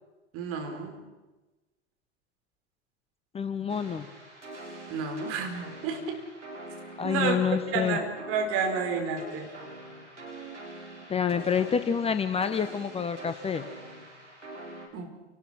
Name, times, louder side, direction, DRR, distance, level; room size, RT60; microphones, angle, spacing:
voice 1, 0.3-1.0 4.9-6.2 7.0-7.4 7.7-9.5 14.9-15.1, right 5 dB, 40° right, 4 dB, 4.6 m, -30 dB
voice 2, 3.3-4.1 7.0-8.0 11.1-13.6, left 7 dB, 15° left, 10 dB, 1.1 m, -28 dB
sound 1, 3.7-14.9, right 1 dB, 85° right, 3.9 m, -44 dB
29.0 x 19.5 x 6.0 m, 1.1 s
figure-of-eight pair, 85°, 34 cm